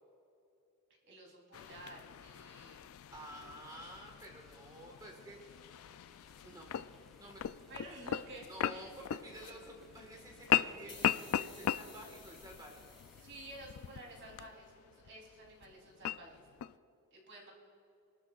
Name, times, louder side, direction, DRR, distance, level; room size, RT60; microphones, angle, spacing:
voice 1, 1.1-2.9 7.7-8.9 13.2-16.4 17.1-17.5, right 1 dB, 55° right, -2 dB, 3.4 m, -52 dB
sound 1, 1.5-16.8, left 10 dB, 65° left, 0.3 m, -39 dB
voice 2, 3.1-5.6 6.4-6.7 7.2-7.4 8.4-12.8, right 1 dB, 20° right, 0 dB, 1.6 m, -51 dB
sound 2, 3.3-13.2, left 1 dB, ahead, 1.8 m, -68 dB
sound 3, 10.9-14.3, left 4 dB, 25° left, 3.3 m, -57 dB
25.5 x 12.5 x 2.4 m, 2.8 s
head